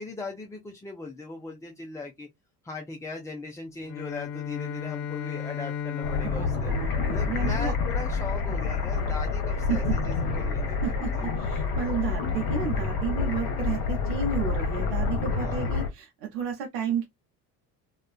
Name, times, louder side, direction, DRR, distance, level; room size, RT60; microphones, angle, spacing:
voice 1, 0.0-2.3 2.6-6.7 7.1-11.2 15.3-15.7, left 3 dB, 10° left, 0.3 m, -39 dB
Bowed string instrument, 3.8-8.2, left 8 dB, 85° left, 0.6 m, -35 dB
sound 1, 6.0-15.9, left 4 dB, 50° left, 1.0 m, -28 dB
voice 2, 6.2-7.7 9.7-10.0 10.8-17.1, right 6 dB, 85° right, 0.7 m, -32 dB
2.4 x 2.2 x 2.3 m
hypercardioid pair, 70°, 46 cm